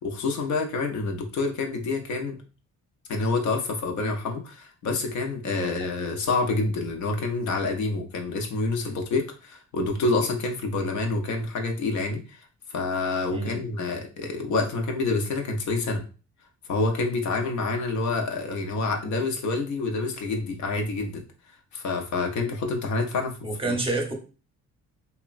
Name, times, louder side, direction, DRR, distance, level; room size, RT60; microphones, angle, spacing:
voice 1, 0.0-2.4 3.1-16.0 16.7-21.2 21.7-23.4 23.7-23.8, left 3 dB, 70° left, 3 dB, 0.7 m, -27 dB
voice 2, 13.3-13.6 23.4-24.1, right 2 dB, 20° right, 3 dB, 0.7 m, -28 dB
2.9 x 2.2 x 2.4 m, 0.35 s
cardioid pair, 90°, 30 cm